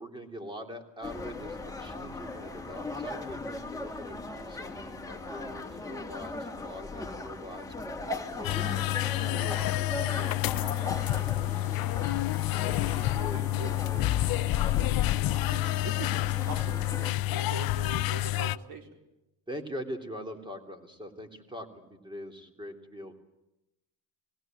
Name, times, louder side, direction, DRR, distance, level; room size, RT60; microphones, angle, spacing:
voice 1, 0.0-8.8 9.2-12.2 12.6-14.1 19.5-23.1, equal, 10° right, 6 dB, 3.2 m, -43 dB
sound 1, 1.0-17.1, left 3 dB, 5° left, 2.5 m, -39 dB
sound 2, 8.4-18.6, left 16 dB, 50° left, 0.7 m, -28 dB
voice 2, 13.2-13.7 15.4-16.1 16.4-18.9, right 5 dB, 50° right, 4 dB, 4.5 m, -43 dB
20.5 x 17.0 x 9.2 m, 0.91 s
cardioid pair, 110°, 45 cm